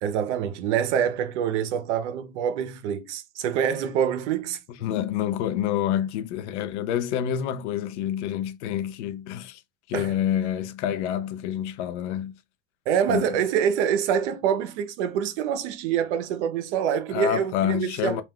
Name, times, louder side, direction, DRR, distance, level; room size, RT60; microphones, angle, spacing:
voice 1, 0.0-4.6 9.9-10.2 12.9-18.2, right 8 dB, 75° right, 0.7 m, -26 dB
voice 2, 4.8-9.6 9.9-12.3 13.1-13.3 17.1-18.2, left 10 dB, 75° left, 0.5 m, -27 dB
2.4 x 2.2 x 3.5 m
hypercardioid pair, 100°, 35 cm